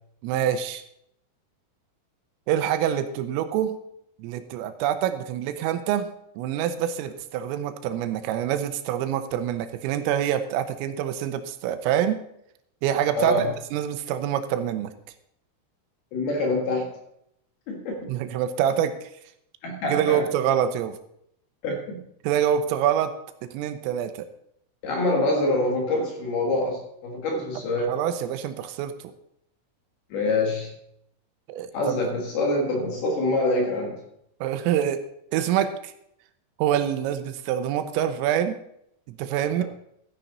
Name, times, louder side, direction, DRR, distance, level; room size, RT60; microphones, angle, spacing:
voice 1, 0.2-0.8 2.5-3.8 4.2-6.1 6.4-12.2 12.8-14.9 18.1-19.1 19.9-21.0 22.2-23.1 23.5-24.3 27.9-29.1 31.5-32.0 34.4-35.0 35.3-35.9 36.6-38.6 39.1-39.6, right 10 dB, 85° right, 10 dB, 3.3 m, -26 dB
voice 2, 13.1-13.5 16.1-16.9 17.7-18.1 19.6-20.3 21.6-22.0 24.8-27.9 30.1-30.7 31.7-34.0, left 2 dB, 60° left, 1 dB, 3.0 m, -25 dB
13.5 x 10.0 x 4.0 m, 0.75 s
omnidirectional pair, 5.9 m